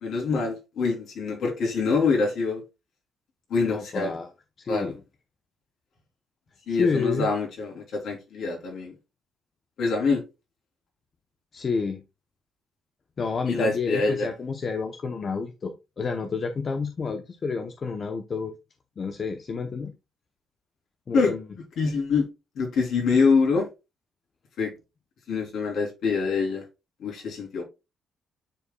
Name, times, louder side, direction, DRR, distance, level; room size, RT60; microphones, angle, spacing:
voice 1, 0.0-2.6 3.5-4.1 4.7-4.9 6.7-8.9 9.8-10.2 13.4-14.3 21.1-21.3 21.8-22.3 22.5-23.7 24.6-24.7 25.3-26.6 27.0-27.6, left 4 dB, 70° left, 3.4 m, -25 dB
voice 2, 3.6-4.3 4.6-5.0 6.7-7.3 11.5-12.0 13.2-18.5 19.0-19.9 21.1-21.4, left 4 dB, 45° left, 0.8 m, -29 dB
10.0 x 4.3 x 2.3 m
cardioid pair, 90°, 0 cm